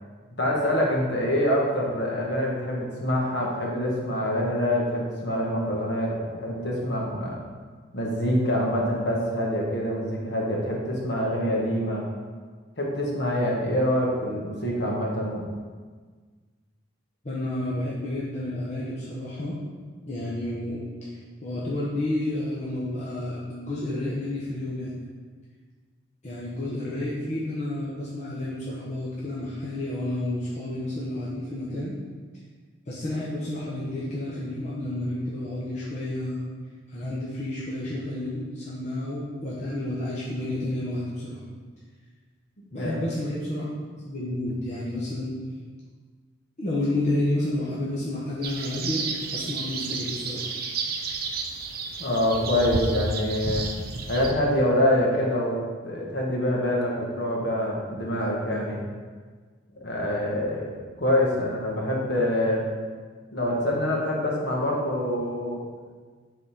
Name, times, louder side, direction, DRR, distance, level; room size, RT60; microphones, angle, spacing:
voice 1, 0.4-7.4 7.9-12.0 12.8-15.4 42.7-43.1 52.0-53.6 54.1-55.6 55.8-58.8 59.8-62.6 63.3-65.6, left 1 dB, 55° left, -2 dB, 1.4 m, -25 dB
voice 2, 17.2-19.6 20.1-24.9 26.2-32.0 32.9-36.4 36.9-41.4 42.7-43.6 44.0-45.4 46.6-49.1 49.3-50.5 58.6-58.7, left 1 dB, 35° left, -7 dB, 1.0 m, -30 dB
sound 1, 48.4-54.3, right 4 dB, 50° right, 0.6 m, -31 dB
7.2 x 4.1 x 5.2 m, 1.5 s
head